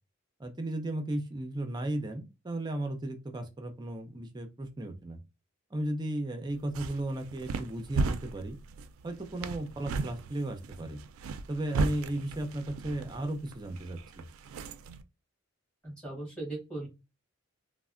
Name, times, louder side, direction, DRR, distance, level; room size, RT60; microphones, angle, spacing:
voice 1, 0.4-5.2 5.7-8.6 9.0-11.0 11.5-14.3, right 1 dB, 20° right, 6 dB, 0.4 m, -35 dB
sound 1, 6.5-15.0, right 3 dB, 85° right, 0.3 m, -36 dB
voice 2, 15.8-16.9, right 2 dB, 5° left, -3 dB, 1.7 m, -38 dB
3.3 x 2.0 x 2.4 m, 0.26 s
head